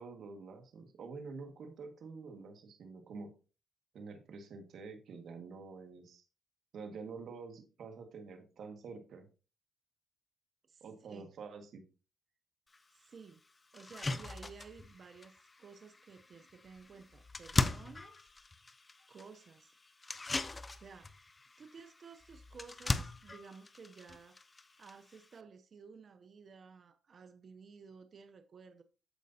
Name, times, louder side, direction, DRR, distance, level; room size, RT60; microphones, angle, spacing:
voice 1, 0.0-3.3 3.9-6.2 6.7-9.3 10.8-11.8, right 4 dB, 65° right, 1.7 m, -47 dB
voice 2, 10.7-11.3 12.9-13.4 13.7-18.3 19.1-19.7 20.7-21.1 21.6-24.4 24.8-28.8, right 5 dB, 50° right, 0.6 m, -54 dB
sound 1, 12.7-12.8 13.3-13.4 13.7-25.4, left 3 dB, 25° left, 0.6 m, -40 dB
14.0 x 5.2 x 2.7 m
cardioid pair, 90°, 0 cm